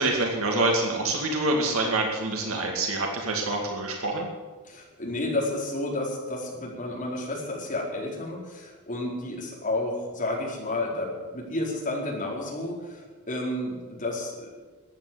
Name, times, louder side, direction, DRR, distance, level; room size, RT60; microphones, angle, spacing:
voice 1, 0.0-4.3, right 2 dB, 70° right, 1 dB, 2.3 m, -26 dB
voice 2, 4.6-14.5, left 1 dB, 35° left, -3 dB, 4.5 m, -31 dB
14.0 x 9.5 x 9.8 m, 1.3 s
head